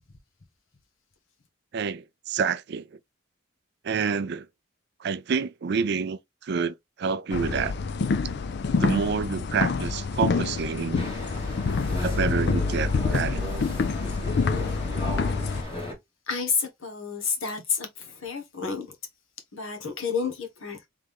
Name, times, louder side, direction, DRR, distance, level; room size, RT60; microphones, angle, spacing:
voice 1, 1.7-2.9 3.8-4.5 5.0-7.7 8.8-11.1 12.0-13.8, right 5 dB, 55° right, 0.4 m, -28 dB
sound 1, 7.3-15.6, left 4 dB, 55° left, 0.4 m, -27 dB
sound 2, 11.0-15.9, left 1 dB, 25° left, 1.4 m, -35 dB
voice 2, 16.3-18.9 19.5-20.9, left 5 dB, 75° left, 1.2 m, -30 dB
3.6 x 3.3 x 3.4 m
head